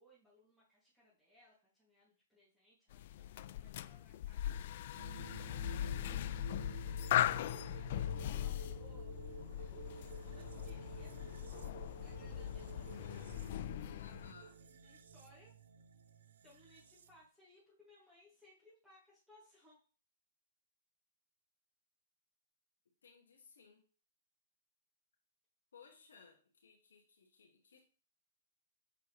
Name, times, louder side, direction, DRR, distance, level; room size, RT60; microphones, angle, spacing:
voice 1, 0.0-5.9 7.1-11.2 12.0-13.0 14.3-15.5 16.4-19.8, left 1 dB, 5° right, -9 dB, 2.7 m, -66 dB
sound 1, 2.9-14.3, left 12 dB, 55° left, 0.3 m, -39 dB
sound 2, 5.0-17.3, right 7 dB, 70° right, 0.8 m, -53 dB
voice 2, 14.0-14.6 23.0-23.8 25.7-27.8, left 5 dB, 80° left, 1 dB, 2.2 m, -61 dB
8.2 x 4.7 x 3.3 m, 0.37 s
hypercardioid pair, 130°, 0 cm